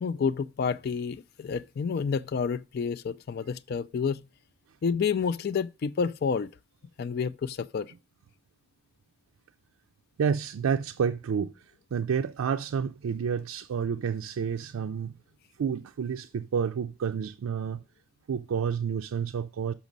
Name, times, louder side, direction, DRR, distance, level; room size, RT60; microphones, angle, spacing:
voice 1, 0.0-4.3 4.8-6.5 7.0-7.9, left 6 dB, 50° left, 0.3 m, -29 dB
voice 2, 10.2-15.1 15.6-17.8 18.3-19.7, right 7 dB, 80° right, 0.4 m, -30 dB
6.1 x 6.1 x 5.2 m
head